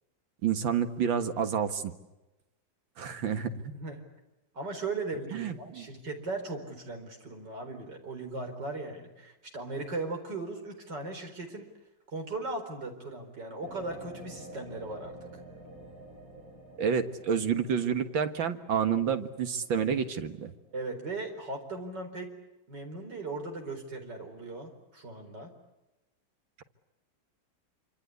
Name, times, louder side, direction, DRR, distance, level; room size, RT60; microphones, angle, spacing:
voice 1, 0.4-1.9 3.0-3.7 5.3-5.9 16.8-20.5, right 7 dB, 85° right, 8 dB, 2.3 m, -29 dB
voice 2, 4.5-11.6 12.1-15.2 20.7-22.3 22.7-25.5, right 3 dB, 65° right, 4 dB, 4.9 m, -38 dB
sound 1, 13.6-21.0, right 2 dB, 45° right, 8.4 m, -49 dB
26.5 x 25.5 x 8.2 m, 1.0 s
omnidirectional pair, 2.1 m